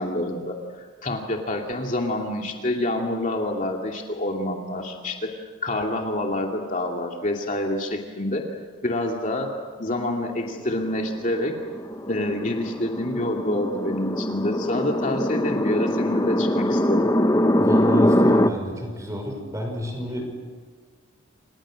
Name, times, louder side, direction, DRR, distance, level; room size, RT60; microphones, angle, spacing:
voice 1, 0.0-5.3 5.6-8.4 8.8-9.5 9.8-11.5 12.1-17.0, left 1 dB, 35° left, 1 dB, 2.5 m, -27 dB
sound 1, 10.5-18.5, left 1 dB, 15° left, 0.9 m, -23 dB
voice 2, 17.6-20.4, equal, 15° right, 3 dB, 5.7 m, -30 dB
30.0 x 27.5 x 6.4 m, 1.5 s
head